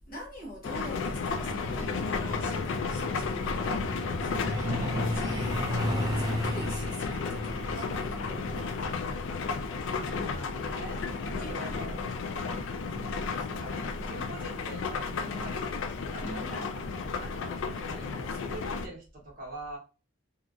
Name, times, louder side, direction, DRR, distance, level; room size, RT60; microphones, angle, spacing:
voice 1, 0.1-9.2 11.0-11.9 12.3-12.5 13.0-13.3 15.2-15.7 16.2-16.8, equal, 45° left, 1.0 m, -44 dB
sound 1, 0.6-18.9, left 4 dB, 65° left, 0.3 m, -33 dB
Truck, 1.3-13.6 14.8-15.0 15.4-15.5 15.9-16.2 16.5-16.6 17.1-17.2, equal, 20° right, 0.4 m, -36 dB
voice 2, 10.0-11.0 11.3-12.1 12.9-13.0 13.5-16.7 17.1-19.8, right 1 dB, 45° right, 1.0 m, -44 dB
2.8 x 2.3 x 2.4 m
head